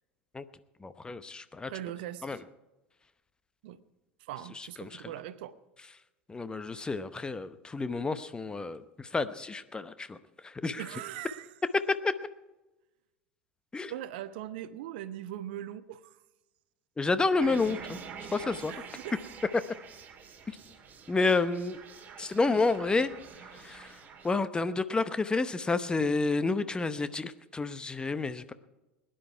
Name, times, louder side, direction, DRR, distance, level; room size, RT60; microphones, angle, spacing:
voice 1, 0.8-1.7 2.2-2.4 4.5-5.1 6.3-10.9 11.8-12.1 13.7-13.9 17.0-18.0 18.3-18.7 19.5-19.6 21.1-21.8 22.2-28.5, left 3 dB, 15° left, 12 dB, 0.8 m, -30 dB
voice 2, 1.7-2.3 3.6-3.8 4.2-5.6 10.8-11.5 13.9-16.2 18.7-19.1 21.2-21.3, right 12 dB, 60° right, 15 dB, 0.8 m, -40 dB
sound 1, 17.4-24.4, right 6 dB, 30° right, 2.2 m, -46 dB
21.5 x 10.5 x 4.7 m, 1.1 s
figure-of-eight pair, 75°, 6 cm